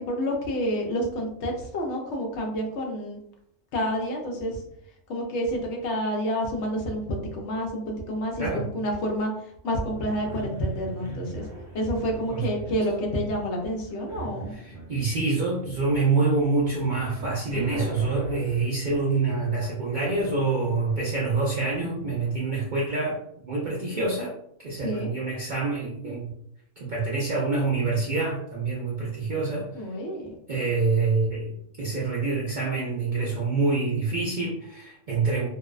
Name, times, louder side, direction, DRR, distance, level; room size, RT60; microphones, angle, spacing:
voice 1, 0.0-3.2 3.7-4.6 5.1-9.3 9.6-11.5 11.7-14.5 24.8-25.1 29.7-30.4, equal, 65° left, 1 dB, 0.8 m, -29 dB
sound 1, 9.6-22.3, right 1 dB, 55° right, 0.9 m, -41 dB
voice 2, 14.5-23.2 23.4-24.3 24.6-26.3 26.8-29.7 30.5-35.5, right 3 dB, 80° right, -4 dB, 0.4 m, -26 dB
2.6 x 2.0 x 2.3 m, 0.72 s
omnidirectional pair, 1.4 m